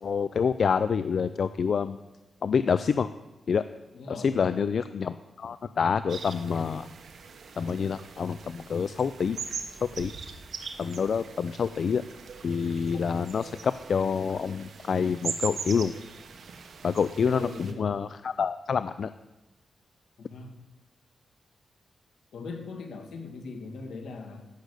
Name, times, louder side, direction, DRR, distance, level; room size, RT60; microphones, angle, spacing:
voice 1, 0.0-2.0 2.4-3.1 3.5-3.6 4.2-6.9 7.6-9.4 9.8-10.1 10.8-12.0 12.4-15.9 16.8-19.1, left 6 dB, 65° left, 13 dB, 0.4 m, -27 dB
voice 2, 3.9-4.6 17.3-18.0 20.2-20.6 22.3-24.5, left 4 dB, 85° left, 4 dB, 2.2 m, -39 dB
sound 1, 6.1-17.7, right 5 dB, 70° right, 1.2 m, -41 dB
15.0 x 6.5 x 8.2 m, 1.0 s
cardioid pair, 85°, 0 cm